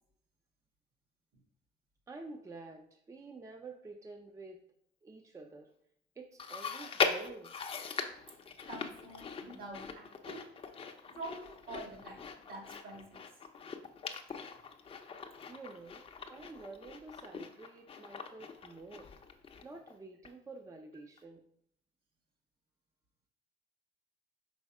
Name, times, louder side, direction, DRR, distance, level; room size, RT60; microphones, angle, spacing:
voice 1, 2.1-4.6 5.0-5.7 6.2-7.5 15.5-19.1 19.6-21.4, right 3 dB, 20° right, 4 dB, 0.5 m, -49 dB
Chewing mastication, 6.4-19.9 20.2-20.3 21.2-21.3, left 5 dB, 35° left, 0.6 m, -40 dB
voice 2, 8.7-10.5 11.1-13.2, right 2 dB, 60° right, 1 dB, 1.9 m, -46 dB
5.4 x 3.9 x 4.8 m, 0.68 s
cardioid pair, 110°, 17 cm